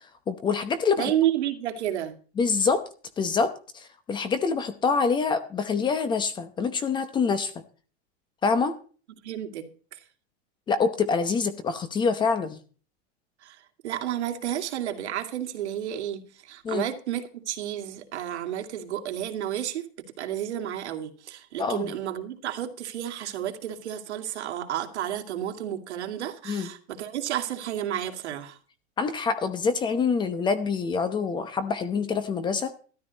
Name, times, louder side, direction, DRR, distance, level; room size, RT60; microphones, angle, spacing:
voice 1, 0.3-1.1 2.4-2.8 3.2-7.5 8.4-8.8 10.7-12.6 16.6-16.9 21.6-21.9 26.5-26.7 29.0-32.7, left 5 dB, 15° left, 0.9 m, -26 dB
voice 2, 1.0-2.2 9.2-10.0 13.4-19.9 20.2-28.6, right 11 dB, 80° right, 2.5 m, -31 dB
13.5 x 13.0 x 4.0 m
supercardioid pair, 165°, 34 cm